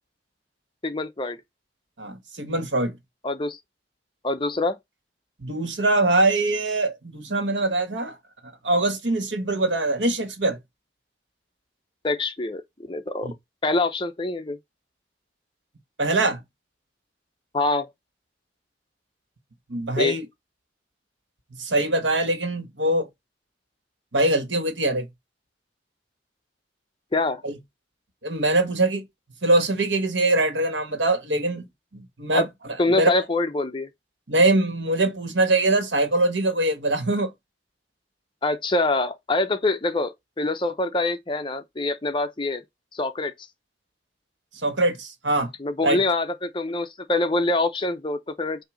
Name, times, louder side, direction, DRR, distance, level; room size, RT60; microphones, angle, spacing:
voice 1, 0.8-1.4 3.2-3.6 4.2-4.8 12.0-12.6 12.9-13.3 13.6-14.6 17.5-17.9 20.0-20.2 27.1-27.4 32.3-32.5 32.8-33.9 38.4-42.6 42.9-43.3 45.6-48.6, left 2 dB, 25° left, 0.6 m, -25 dB
voice 2, 2.0-3.0 5.4-8.1 8.6-10.6 13.2-13.3 16.0-16.4 19.7-20.2 21.6-23.1 24.1-25.1 27.4-27.5 28.2-29.0 29.4-31.7 31.9-33.1 34.3-37.3 44.6-45.5 45.8-46.0, right 2 dB, 90° right, 1.7 m, -23 dB
7.5 x 2.7 x 5.1 m
head